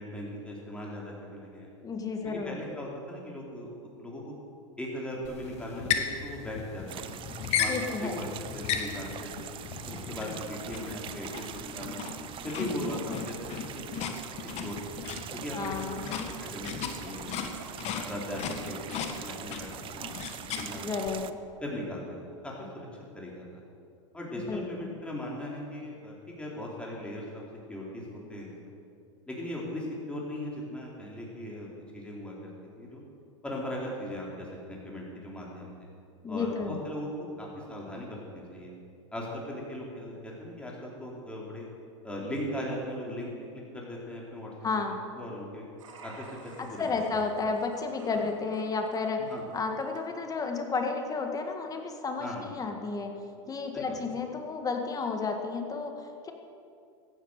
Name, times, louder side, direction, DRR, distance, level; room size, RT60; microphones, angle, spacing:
voice 1, 0.0-1.7 2.2-3.7 4.0-4.3 4.8-7.2 7.6-7.7 8.0-9.5 9.9-12.1 12.4-14.1 14.6-15.0 15.3-15.8 16.1-16.7 17.0-17.6 18.0-20.1 20.5-20.9 21.6-22.9 23.1-23.6 24.1-27.4 27.7-28.7 29.3-33.0 33.4-35.7 36.3-38.7 39.1-41.7 42.0-43.3 43.7-44.5 45.1-45.6 46.0-47.2 48.1-48.3 49.3-49.4 52.2-52.5 53.7-54.0, left 1 dB, 5° left, -3 dB, 3.9 m, -39 dB
voice 2, 1.8-2.6 7.7-8.2 15.5-16.1 20.7-21.4 24.4-24.9 36.2-36.8 44.6-45.0 46.6-49.2 49.5-53.1 53.5-56.3, left 4 dB, 20° left, 4 dB, 1.8 m, -32 dB
sound 1, 5.2-21.1, left 7 dB, 40° left, 1.6 m, -36 dB
sound 2, 6.9-21.3, right 11 dB, 35° right, 0.6 m, -43 dB
sound 3, 45.8-50.0, right 4 dB, 85° right, 2.2 m, -52 dB
15.0 x 10.0 x 6.6 m, 2.4 s
hypercardioid pair, 110°, 16 cm